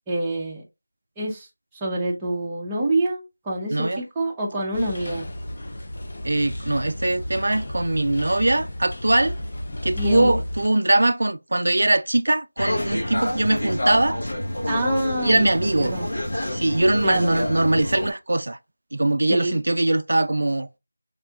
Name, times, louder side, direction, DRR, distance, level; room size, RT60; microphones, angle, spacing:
voice 1, 0.1-0.6 1.2-1.5 1.8-5.3 9.9-10.4 14.7-15.5 15.8-16.1 17.0-17.4 19.3-19.6, right 1 dB, 5° right, 0.6 m, -26 dB
sound 1, 4.7-10.7, left 1 dB, 40° left, 0.6 m, -32 dB
voice 2, 6.2-9.3 9.8-14.2 15.2-15.9 16.5-18.6 18.9-20.8, right 2 dB, 75° right, 0.3 m, -21 dB
sound 2, 12.6-18.1, left 1 dB, 85° left, 1.0 m, -28 dB
3.5 x 2.3 x 3.7 m
figure-of-eight pair, 175°, 0 cm